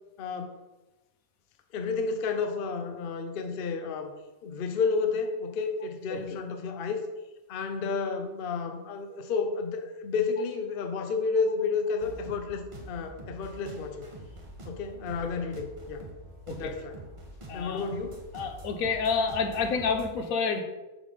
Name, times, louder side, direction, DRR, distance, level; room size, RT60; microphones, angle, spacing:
voice 1, 0.2-0.6 1.7-4.1 4.4-7.0 7.5-14.0 14.6-16.0 16.6-17.0 17.5-18.2, left 4 dB, 50° left, 6 dB, 0.7 m, -31 dB
sound 1, 12.0-20.1, right 1 dB, 25° right, 0.9 m, -45 dB
voice 2, 17.5-17.9 18.3-20.6, left 5 dB, 80° left, 6 dB, 1.2 m, -29 dB
7.3 x 3.4 x 5.3 m, 1.1 s
omnidirectional pair, 1.5 m